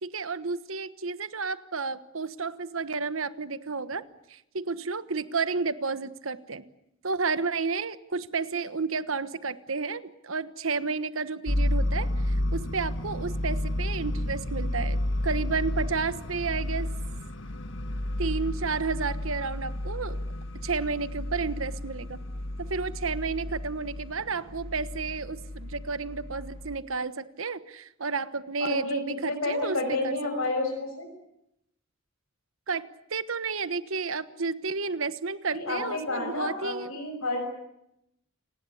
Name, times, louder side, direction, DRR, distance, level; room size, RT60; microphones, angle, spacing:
voice 1, 0.0-4.0 4.3-6.6 7.0-16.9 18.2-20.2 20.6-22.2 22.6-29.8 30.0-30.2 30.5-30.6 32.7-36.9, right 4 dB, 80° right, 13 dB, 1.3 m, -31 dB
sound 1, 11.5-26.8, left 1 dB, 60° left, 1.7 m, -31 dB
voice 2, 29.3-31.1 35.5-37.4, left 2 dB, 90° left, 2 dB, 6.4 m, -30 dB
29.0 x 19.0 x 8.4 m, 0.82 s
head